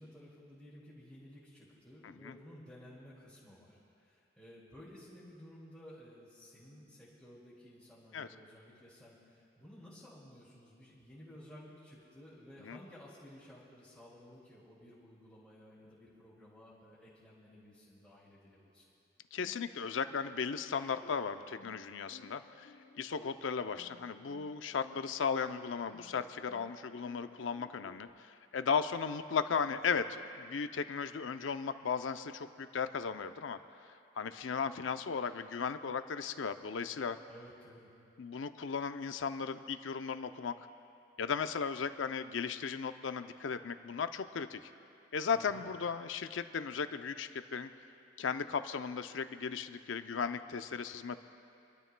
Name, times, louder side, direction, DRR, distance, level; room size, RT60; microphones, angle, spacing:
voice 1, 0.0-18.9 37.3-37.9 45.3-45.7, equal, ahead, -13 dB, 2.4 m, -55 dB
voice 2, 19.3-33.6 34.2-37.2 38.2-40.5 41.2-44.6 45.1-47.7 48.2-51.2, left 6 dB, 85° left, 10 dB, 0.5 m, -36 dB
sound 1, 19.4-28.1, left 2 dB, 65° left, 1.0 m, -59 dB
27.5 x 12.5 x 2.2 m, 2.6 s
head